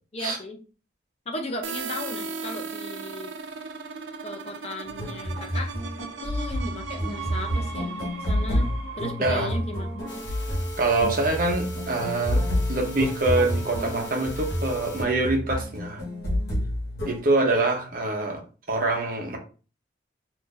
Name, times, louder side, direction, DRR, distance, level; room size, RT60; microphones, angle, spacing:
voice 1, 0.1-0.6 1.3-3.4 4.2-5.7 6.0-7.9 8.2-10.1, left 1 dB, 35° left, 0.5 m, -36 dB
sound 1, 1.6-11.2, right 4 dB, 85° right, 0.5 m, -37 dB
sound 2, 4.9-17.2, equal, 55° left, 1.2 m, -29 dB
voice 2, 9.2-9.5 10.8-12.4 12.7-16.0 17.1-18.4 18.7-19.4, right 2 dB, 50° right, 0.8 m, -25 dB
sound 3, 10.1-15.0, right 1 dB, 80° left, 0.8 m, -39 dB
2.6 x 2.5 x 3.8 m
head